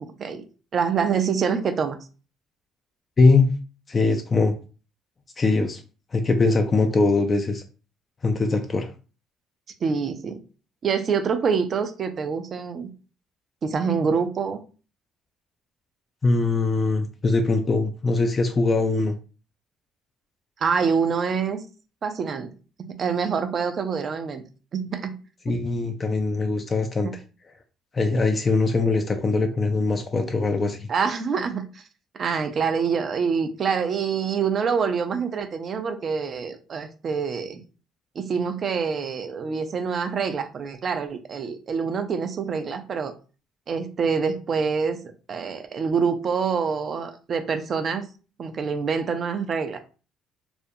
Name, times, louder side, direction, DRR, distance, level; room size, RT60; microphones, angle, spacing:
voice 1, 0.7-2.0 9.8-10.4 10.8-12.9 13.6-14.6 20.6-21.6 22.0-22.5 22.8-24.4 24.7-25.1 25.5-25.6 27.0-27.1 28.1-28.2 30.9-31.8 32.2-37.6 38.2-43.1 43.7-45.0 45.3-48.1 48.4-49.8, right 6 dB, 50° right, 8 dB, 0.4 m, -26 dB
voice 2, 3.2-3.5 3.9-4.5 5.4-5.8 6.1-7.6 8.2-8.9 16.2-19.2 25.5-27.1 27.9-30.9, left 3 dB, 35° left, 5 dB, 0.3 m, -21 dB
2.4 x 2.0 x 2.6 m, 0.35 s
supercardioid pair, 75°, 0 cm